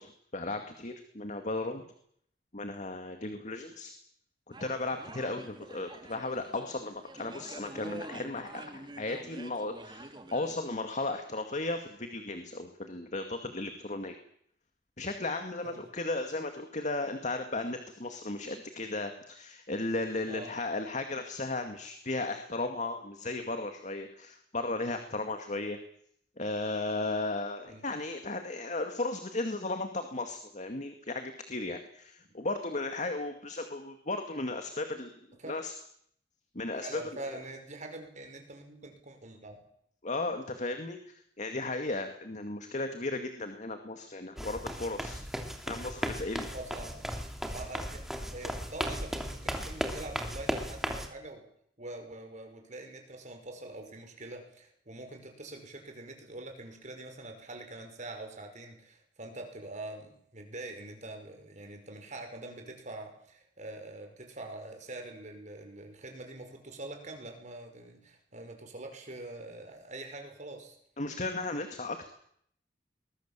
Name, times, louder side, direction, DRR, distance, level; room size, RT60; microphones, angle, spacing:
voice 1, 0.0-1.8 2.5-3.9 4.5-14.2 15.0-25.8 26.4-35.2 35.5-35.7 36.5-37.2 40.0-45.2 45.7-46.5 71.0-72.1, left 2 dB, 40° left, 6 dB, 2.1 m, -35 dB
sound 1, 4.5-10.6, right 2 dB, 25° right, 2.5 m, -47 dB
voice 2, 36.7-39.6 45.7-45.9 46.5-47.1 47.4-48.0 48.3-51.4 51.8-70.8, right 2 dB, 45° right, 5 dB, 5.7 m, -44 dB
sound 2, 44.4-51.1, equal, ahead, 3.0 m, -36 dB
23.5 x 21.5 x 7.5 m, 0.67 s
head